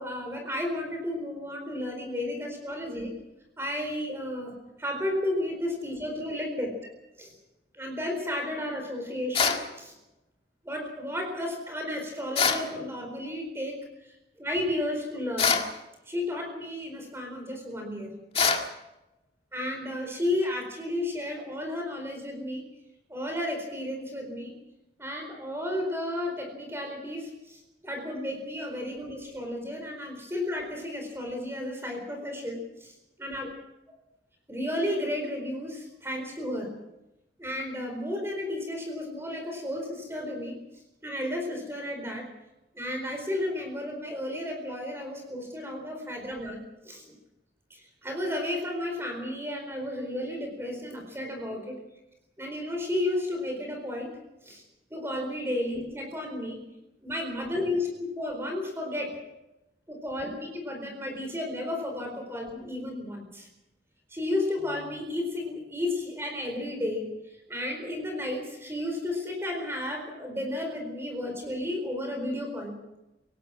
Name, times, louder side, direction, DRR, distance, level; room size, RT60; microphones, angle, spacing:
voice 1, 0.0-3.1 3.6-6.8 7.2-7.4 7.7-9.9 10.6-15.6 16.1-18.1 19.5-22.7 23.1-24.6 25.0-32.9 33.2-33.5 34.5-36.7 37.4-40.6 41.0-42.3 42.7-47.1 47.7-51.8 52.4-54.2 54.4-54.6 54.9-56.6 57.0-59.2 59.9-63.5 64.1-67.1 67.5-72.8, left 1 dB, 15° right, 3 dB, 4.4 m, -33 dB
sound 1, 9.3-9.7 12.3-12.7 15.4-15.7 18.3-18.7, left 5 dB, 35° left, 2.0 m, -24 dB
26.0 x 18.0 x 6.0 m, 0.94 s
head